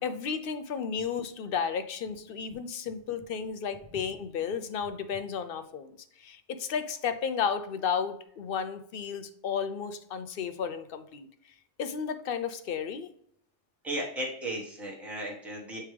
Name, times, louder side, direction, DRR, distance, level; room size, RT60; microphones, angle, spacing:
voice 1, 0.0-11.3 11.8-13.1, left 6 dB, 65° left, 10 dB, 0.7 m, -33 dB
voice 2, 13.8-15.8, right 1 dB, ahead, -4 dB, 1.3 m, -35 dB
8.3 x 3.4 x 3.3 m, 0.67 s
omnidirectional pair, 1.1 m